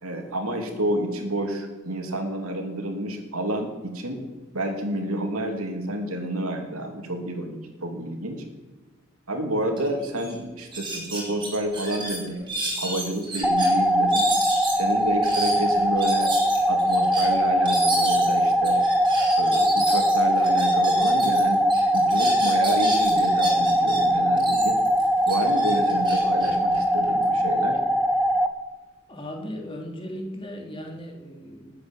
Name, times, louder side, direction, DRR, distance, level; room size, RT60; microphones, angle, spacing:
voice 1, 0.0-4.2 4.5-8.4 9.3-12.4 12.8-14.3 14.7-16.3 16.7-18.8 19.3-21.6 21.9-24.8 25.3-27.8, right 1 dB, 85° right, 4 dB, 2.9 m, -29 dB
sound 1, 9.8-9.9 10.2-10.3 10.7-13.7 14.1-21.4 21.7-24.0 24.4-27.3, right 1 dB, 20° right, 5.2 m, -32 dB
sound 2, 13.4-28.5, equal, ahead, 0.9 m, -21 dB
voice 2, 29.1-31.8, equal, 25° left, 2 dB, 3.1 m, -37 dB
20.0 x 8.9 x 7.4 m, 1.4 s
head